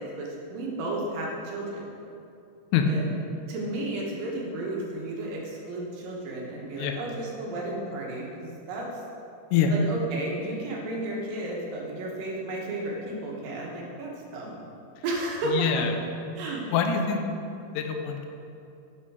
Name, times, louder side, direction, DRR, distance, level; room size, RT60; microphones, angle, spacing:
voice 1, 0.0-1.9 2.9-3.0 3.5-9.0 9.7-14.6 15.0-15.8 16.4-16.6, right 2 dB, 60° right, -2 dB, 2.7 m, -33 dB
voice 2, 15.5-15.9 16.3-16.4 16.7-17.2 17.7-18.3, left 8 dB, 80° left, 4 dB, 2.9 m, -25 dB
11.5 x 7.5 x 4.9 m, 2.7 s
omnidirectional pair, 5.0 m